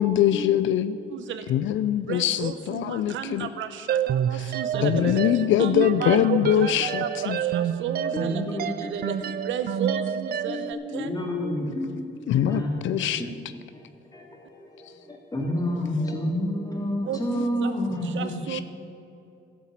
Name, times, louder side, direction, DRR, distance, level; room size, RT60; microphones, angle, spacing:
voice 1, 0.0-1.0 1.5-3.5 4.3-4.5 4.8-7.4 12.3-13.2 18.5-18.6, left 11 dB, 75° left, 13 dB, 0.5 m, -23 dB
voice 2, 1.1-1.5 2.1-5.2 5.6-8.4 8.8-11.1 17.1-17.7 18.0-18.6, right 8 dB, 75° right, 10 dB, 0.8 m, -32 dB
sound 1, 3.9-10.7, right 9 dB, 50° right, 0.4 m, -29 dB
voice 3, 8.1-9.3 10.4-12.7 13.1-13.3 13.7-13.8 14.1-18.4, left 1 dB, 20° left, -2 dB, 3.3 m, -30 dB
12.0 x 8.3 x 7.4 m, 2.5 s
cardioid pair, 90°, 20 cm